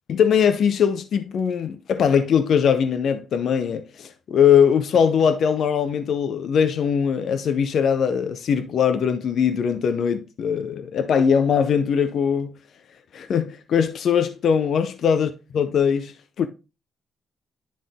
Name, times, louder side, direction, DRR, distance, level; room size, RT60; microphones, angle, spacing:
voice 1, 0.1-12.5 13.1-16.1 16.4-16.5, left 7 dB, 65° left, 0.6 m, -21 dB
10.0 x 3.7 x 3.5 m
cardioid pair, 90°, 0 cm